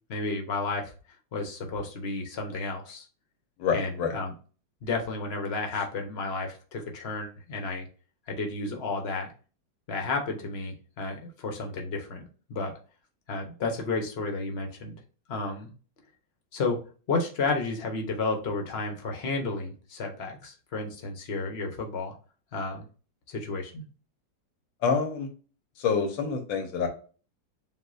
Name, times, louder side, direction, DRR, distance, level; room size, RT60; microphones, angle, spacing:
voice 1, 0.1-0.9 1.3-3.1 3.7-4.3 4.8-7.9 8.3-9.3 9.9-12.7 13.3-14.9 15.3-15.7 16.5-16.8 17.1-22.1 22.5-22.8 23.3-23.8, left 3 dB, 40° left, 2 dB, 1.0 m, -32 dB
voice 2, 3.6-4.1 24.8-25.3 25.8-26.9, left 6 dB, 85° left, 3 dB, 1.8 m, -27 dB
7.8 x 2.6 x 2.6 m, 0.37 s
omnidirectional pair, 2.0 m